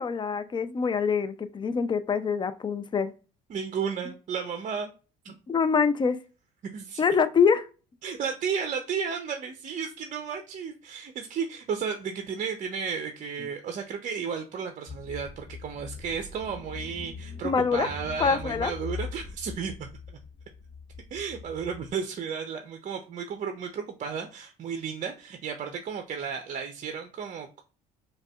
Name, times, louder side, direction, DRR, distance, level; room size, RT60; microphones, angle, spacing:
voice 1, 0.0-3.1 5.5-6.2 7.0-7.7 17.4-17.9 18.2-18.7, left 6 dB, 25° left, 13 dB, 0.4 m, -25 dB
voice 2, 3.5-4.9 5.2-5.3 6.7-7.0 8.0-19.9 21.1-27.6, right 6 dB, 40° right, 6 dB, 0.6 m, -33 dB
Car / Engine, 14.9-21.9, left 5 dB, 40° left, 1.2 m, -41 dB
4.8 x 2.3 x 2.2 m, 0.35 s
hypercardioid pair, 65°, 19 cm